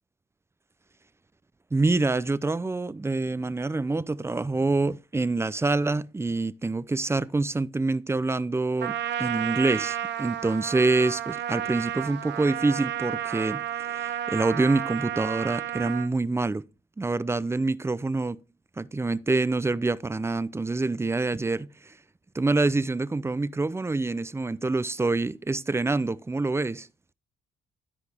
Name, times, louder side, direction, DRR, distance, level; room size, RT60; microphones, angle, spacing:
voice 1, 1.7-16.6 17.0-18.4 18.8-21.9 22.3-26.9, right 3 dB, 15° right, 0.5 m, -26 dB
Trumpet, 8.8-16.1, right 11 dB, 65° right, 0.7 m, -32 dB
13.0 x 4.5 x 3.4 m
cardioid pair, 90°, 20 cm